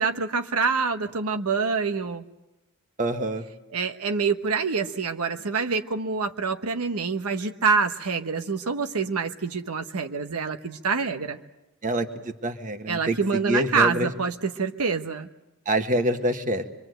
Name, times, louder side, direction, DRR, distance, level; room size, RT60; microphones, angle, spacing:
voice 1, 0.0-2.2 3.7-11.4 12.9-15.3, right 5 dB, 80° right, 6 dB, 1.1 m, -26 dB
voice 2, 3.0-3.4 11.8-14.1 15.6-16.6, right 1 dB, 35° right, 7 dB, 1.5 m, -26 dB
26.0 x 23.5 x 7.9 m, 0.93 s
head